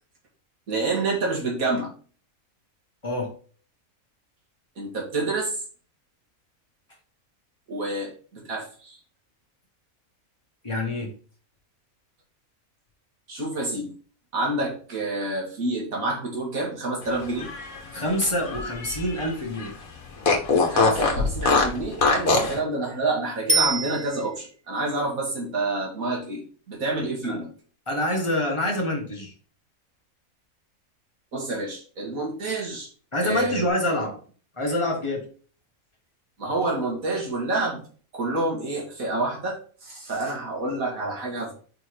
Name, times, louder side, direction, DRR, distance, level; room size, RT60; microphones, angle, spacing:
voice 1, 0.7-1.9 4.8-5.6 7.7-9.0 13.3-13.9 14.3-17.5 20.7-27.5 31.3-32.9 33.2-33.6 36.4-37.8 38.1-41.5, right 2 dB, 85° right, 2.4 m, -28 dB
voice 2, 10.6-11.1 17.9-19.8 27.2-27.4 27.9-29.3 33.1-34.2 34.6-35.3, left 1 dB, 20° left, 1.8 m, -26 dB
Fart, 17.2-19.3 19.6-19.7 20.2-22.6, left 4 dB, 85° left, 1.7 m, -23 dB
Bicycle bell, 23.5-24.6 33.7-33.8, right 3 dB, 5° right, 1.5 m, -25 dB
5.3 x 4.3 x 4.8 m
omnidirectional pair, 1.4 m